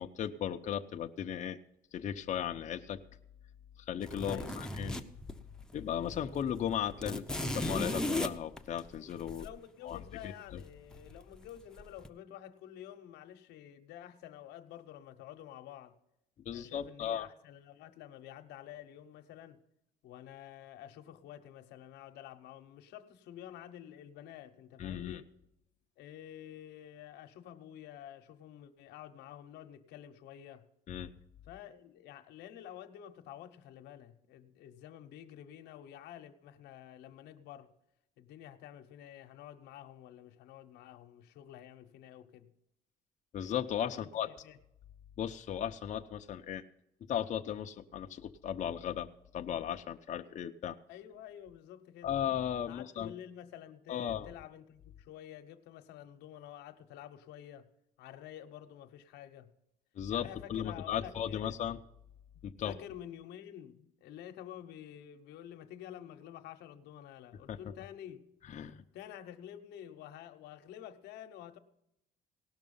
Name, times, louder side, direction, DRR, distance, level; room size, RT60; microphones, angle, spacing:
voice 1, 0.0-1.6 1.9-3.0 3.8-4.9 5.7-9.5 9.8-10.6 16.5-17.3 24.8-25.2 30.9-31.1 43.3-44.3 45.2-46.6 47.1-49.1 49.3-50.8 52.0-53.1 53.9-54.3 60.0-61.8 62.4-62.7 67.5-67.6 68.5-68.8, left 9 dB, 45° left, 0.7 m, -36 dB
sound 1, 4.0-5.7 6.0-6.2 6.4-9.5 10.9-11.5 11.8-12.1, left 1 dB, 5° left, 0.8 m, -36 dB
voice 2, 4.2-4.7 9.4-16.0 16.5-19.6 20.0-25.3 26.0-30.6 31.5-37.7 38.2-42.5 43.9-44.1 44.4-44.6 50.9-52.1 52.7-57.7 58.0-59.5 60.1-61.6 62.6-68.2 68.9-71.6, left 11 dB, 85° left, 1.0 m, -50 dB
18.0 x 6.1 x 5.4 m
cardioid pair, 110°, 17 cm